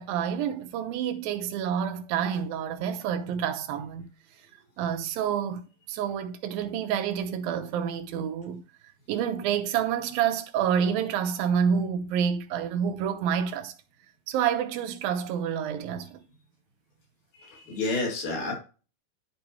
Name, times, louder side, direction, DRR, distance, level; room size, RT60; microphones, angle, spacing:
voice 1, 0.0-4.1 4.8-8.6 9.1-13.7 14.3-16.2, right 8 dB, 80° right, 2.7 m, -28 dB
voice 2, 17.4-18.6, left 2 dB, 60° left, 3.9 m, -30 dB
11.0 x 5.0 x 3.1 m
omnidirectional pair, 4.1 m